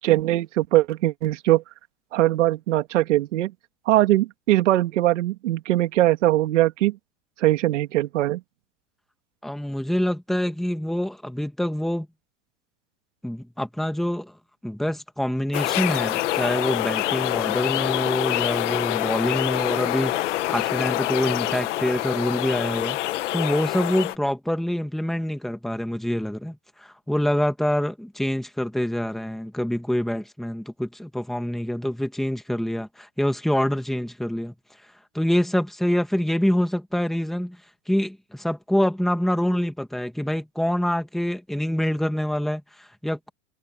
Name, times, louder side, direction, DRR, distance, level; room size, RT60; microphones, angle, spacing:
voice 1, 0.0-1.6 2.1-3.5 3.9-7.0 7.4-8.4, right 15 dB, 85° right, 2.6 m, -21 dB
voice 2, 9.4-12.1 13.2-14.4 14.6-34.5 35.1-37.6 37.9-43.3, equal, ahead, 2.1 m, -26 dB
sound 1, 15.5-24.2, left 16 dB, 80° left, 1.7 m, -26 dB
supercardioid pair, 130°, 36 cm